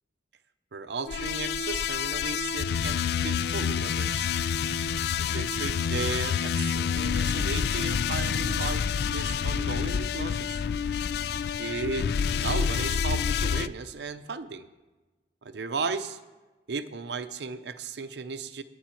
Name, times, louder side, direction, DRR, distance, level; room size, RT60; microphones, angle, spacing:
voice 1, 0.7-4.3 5.2-10.6 11.6-12.1 12.4-14.7 15.4-16.2 16.7-18.6, right 4 dB, 70° right, 10 dB, 0.6 m, -35 dB
sound 1, 1.1-13.7, left 7 dB, 65° left, 0.3 m, -28 dB
9.2 x 7.4 x 9.0 m, 1.2 s
head